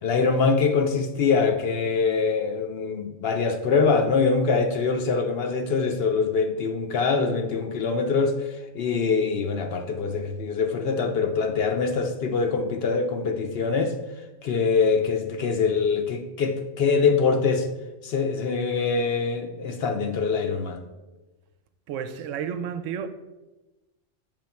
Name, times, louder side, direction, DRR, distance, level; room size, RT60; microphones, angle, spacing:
voice 1, 0.0-13.9 14.4-17.7 18.0-20.8, left 5 dB, 60° left, 0.7 m, -24 dB
voice 2, 21.9-23.1, right 8 dB, 80° right, 0.9 m, -31 dB
7.0 x 3.1 x 5.7 m
omnidirectional pair, 1.3 m